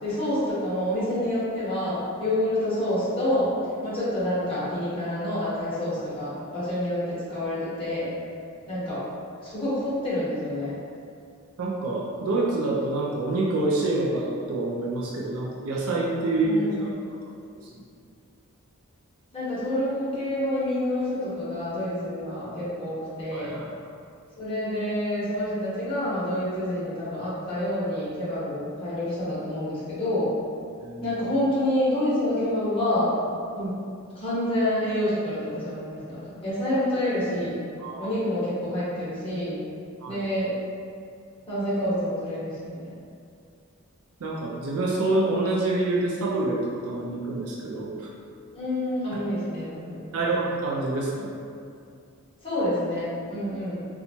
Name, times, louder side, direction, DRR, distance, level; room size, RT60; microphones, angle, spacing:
voice 1, 0.0-3.5 3.8-8.1 8.7-9.0 9.4-10.7 16.4-16.8 19.3-23.6 24.4-30.3 31.0-33.2 33.5-33.8 34.1-37.6 38.0-39.6 40.1-40.5 41.5-42.9 48.5-50.0 52.4-53.8, left 1 dB, 25° left, -11 dB, 1.0 m, -28 dB
voice 2, 11.6-16.9 17.7-17.8 23.3-23.6 30.8-31.1 37.8-38.1 40.0-40.2 44.2-48.1 50.1-51.3, right 2 dB, 90° right, -3 dB, 0.5 m, -27 dB
4.3 x 2.3 x 2.7 m, 2.3 s
head